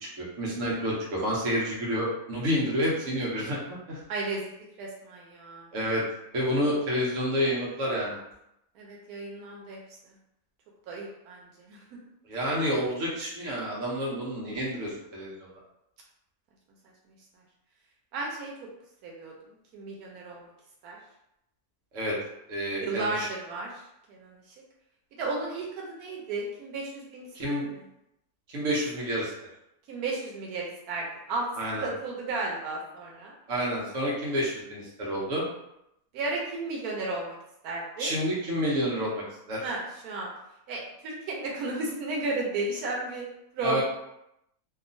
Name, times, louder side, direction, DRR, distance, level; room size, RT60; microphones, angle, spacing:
voice 1, 0.2-4.0 5.7-6.0 6.3-8.2 12.3-15.5 21.9-22.2 22.5-23.3 27.3-27.7 28.5-29.3 31.6-31.9 33.5-35.4 38.0-39.6 43.6-43.8, equal, 65° right, -4 dB, 1.1 m, -29 dB
voice 2, 4.1-5.6 8.8-9.8 10.0-10.1 10.9-11.8 18.1-18.5 19.0-19.3 19.7-20.5 20.8-21.0 22.8-23.8 24.1-24.4 25.2-27.8 29.9-31.5 31.7-33.3 36.1-37.4 37.6-38.1 39.6-40.3 40.7-43.3 43.5-43.8, right 3 dB, 90° right, -2 dB, 1.1 m, -34 dB
2.8 x 2.4 x 2.5 m, 0.82 s
omnidirectional pair, 1.5 m